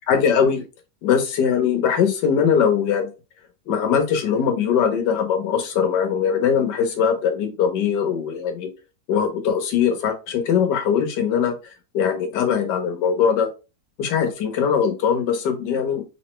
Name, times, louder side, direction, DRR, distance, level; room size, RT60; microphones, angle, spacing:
voice 1, 0.1-0.6 1.0-3.1 3.7-8.7 9.1-13.5 14.0-16.0, left 7 dB, 75° left, 6 dB, 1.4 m, -21 dB
3.6 x 3.1 x 3.0 m, 0.30 s
omnidirectional pair, 1.9 m